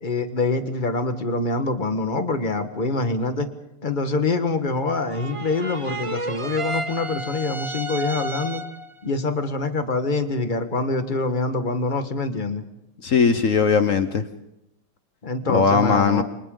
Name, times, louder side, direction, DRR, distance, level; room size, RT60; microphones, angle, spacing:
voice 1, 0.0-3.5 3.8-8.6 9.0-12.6 15.2-16.2, left 3 dB, 25° left, 8 dB, 1.3 m, -25 dB
sound 1, 5.1-8.9, right 1 dB, 55° right, 0.3 m, -32 dB
voice 2, 13.0-14.2 15.5-16.2, left 5 dB, 50° left, 10 dB, 1.0 m, -19 dB
29.0 x 25.0 x 3.9 m, 0.86 s
omnidirectional pair, 2.4 m